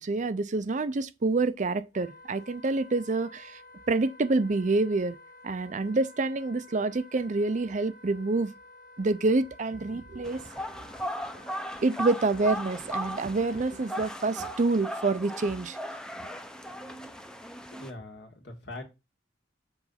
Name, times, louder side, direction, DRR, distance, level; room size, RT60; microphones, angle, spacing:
voice 1, 0.0-3.6 3.9-5.2 5.4-8.5 9.0-10.4 11.8-15.8 16.2-16.3, right 3 dB, 40° right, 0.5 m, -27 dB
Wind instrument woodwind instrument, 1.9-14.6, left 1 dB, 45° left, 1.1 m, -52 dB
sound 1, 10.2-17.9, equal, 5° left, 0.6 m, -37 dB
voice 2, 17.8-18.8, left 2 dB, 65° left, 1.8 m, -42 dB
7.1 x 3.8 x 5.7 m
head